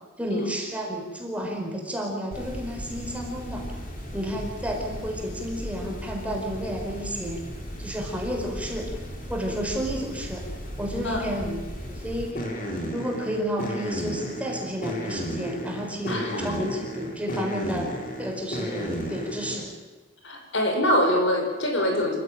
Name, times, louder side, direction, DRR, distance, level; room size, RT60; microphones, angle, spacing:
voice 1, 0.2-3.7 4.1-7.4 7.8-8.9 9.3-10.5 10.8-12.4 12.9-19.7, equal, 5° right, 0 dB, 4.5 m, -31 dB
sound 1, 2.3-19.7, equal, 45° left, 3.6 m, -35 dB
voice 2, 16.1-16.5 20.2-22.2, left 1 dB, 70° left, 3 dB, 5.4 m, -24 dB
27.5 x 16.0 x 9.3 m, 1.2 s
head